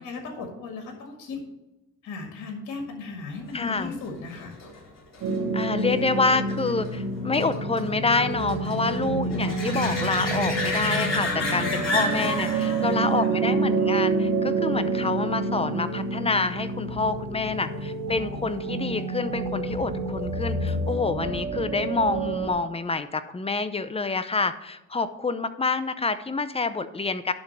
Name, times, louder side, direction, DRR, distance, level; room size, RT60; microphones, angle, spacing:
voice 1, 0.0-1.4 2.0-4.6 11.4-11.8 12.6-13.4, left 4 dB, 80° left, 3 dB, 1.9 m, -37 dB
voice 2, 3.5-3.9 5.5-27.3, left 3 dB, 20° left, 12 dB, 0.6 m, -27 dB
sound 1, 3.8-15.0 20.7-20.8, left 2 dB, 60° left, 3.7 m, -33 dB
sound 2, 5.2-22.5, right 3 dB, 65° right, 1.8 m, -28 dB
11.0 x 3.7 x 6.8 m, 0.94 s
cardioid pair, 90°, 30 cm